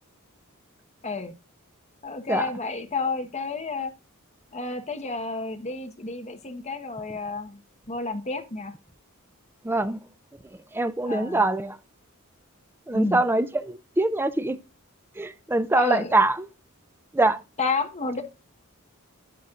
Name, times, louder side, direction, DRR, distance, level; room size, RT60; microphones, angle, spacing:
voice 1, 1.0-1.3 2.0-3.9 4.5-7.6 7.9-8.7 11.1-11.5 12.9-13.2 15.7-16.1 17.6-18.2, left 3 dB, 30° left, 1.2 m, -30 dB
voice 2, 9.6-10.0 10.7-11.8 12.9-14.6 15.2-16.5 17.1-17.4, right 2 dB, 10° right, 0.5 m, -23 dB
11.0 x 9.3 x 2.4 m
head